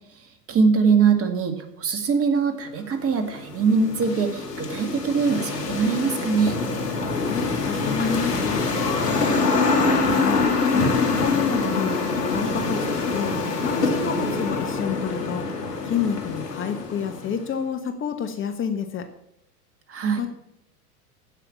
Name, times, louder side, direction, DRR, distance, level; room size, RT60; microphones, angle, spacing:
voice 1, 0.2-6.6 19.9-20.3, right 5 dB, 30° right, 8 dB, 2.0 m, -22 dB
sound 1, 3.0-17.5, left 3 dB, 80° left, 2.3 m, -25 dB
voice 2, 7.2-8.7 9.3-12.0 12.3-15.5 15.8-19.1 20.2-20.3, left 7 dB, 25° left, 7 dB, 1.3 m, -29 dB
16.0 x 5.8 x 7.1 m, 0.82 s
hypercardioid pair, 90°, 47 cm